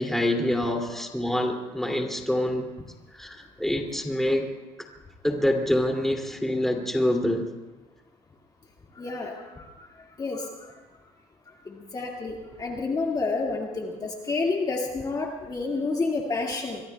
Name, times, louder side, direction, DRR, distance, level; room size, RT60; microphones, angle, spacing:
voice 1, 0.0-2.7 3.1-4.5 5.2-7.4, left 1 dB, 5° left, 2 dB, 2.6 m, -26 dB
voice 2, 9.0-9.6 10.2-10.5 11.7-16.8, left 3 dB, 30° left, 0 dB, 2.0 m, -29 dB
25.5 x 23.5 x 2.3 m, 1.2 s
cardioid pair, 100°, 13 cm